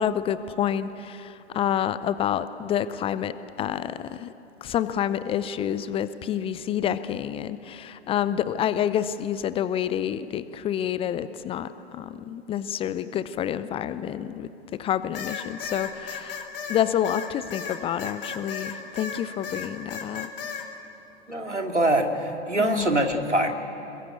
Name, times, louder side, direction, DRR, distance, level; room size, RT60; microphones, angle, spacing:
voice 1, 0.0-4.3 4.6-14.5 14.8-20.3 22.6-22.9, left 10 dB, 15° left, 14 dB, 0.6 m, -28 dB
sound 1, 15.1-19.2 19.4-20.6, left 6 dB, 50° left, 3.5 m, -34 dB
voice 2, 21.3-23.5, right 1 dB, 90° right, 3 dB, 2.7 m, -24 dB
26.0 x 21.5 x 8.3 m, 2.9 s
figure-of-eight pair, 105°, 34 cm